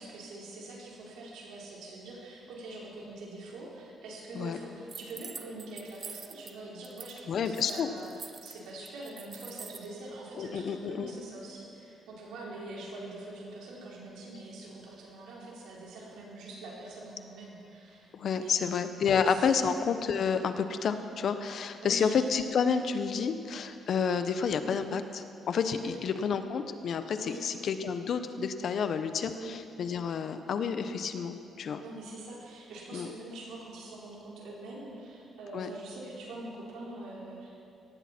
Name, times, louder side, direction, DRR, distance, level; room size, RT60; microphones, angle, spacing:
voice 1, 0.0-19.5 21.8-22.1 25.8-26.0 27.2-27.4 29.4-29.6 31.8-37.7, right 2 dB, 90° right, -4 dB, 4.3 m, -44 dB
sound 1, 4.9-6.5 6.8-7.2 7.5-9.9, right 5 dB, 35° right, 0.8 m, -45 dB
voice 2, 7.3-7.9 10.4-11.1 18.1-31.8 32.9-33.1 35.5-35.7, left 6 dB, 60° left, 9 dB, 1.0 m, -30 dB
18.0 x 15.0 x 4.5 m, 2.5 s
cardioid pair, 90°, 0 cm